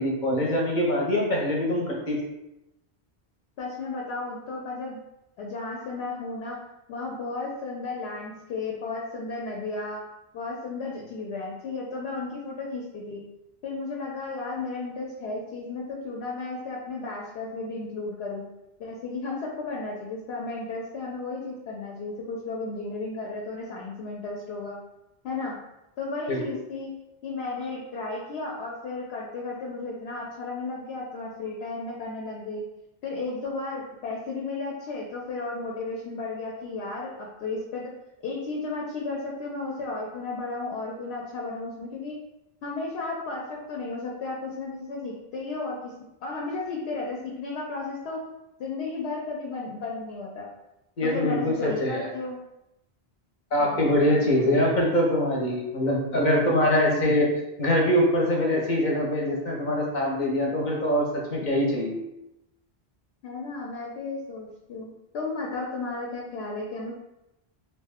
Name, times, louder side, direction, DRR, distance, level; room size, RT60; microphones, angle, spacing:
voice 1, 0.0-2.2 26.3-26.4 51.0-52.1 53.5-57.3 57.6-62.0, left 1 dB, 55° left, -1 dB, 0.7 m, -23 dB
voice 2, 3.6-5.0 5.4-6.6 6.9-10.0 10.3-13.2 13.6-18.4 18.8-24.8 25.2-25.6 26.0-26.9 27.2-32.6 33.0-37.9 38.2-42.2 42.6-45.9 46.2-48.2 48.6-50.5 51.0-52.4 53.6-54.9 56.7-57.0 63.2-64.9 65.1-67.0, left 3 dB, 90° left, -2 dB, 0.8 m, -34 dB
2.6 x 2.1 x 3.4 m, 0.91 s
omnidirectional pair, 1.1 m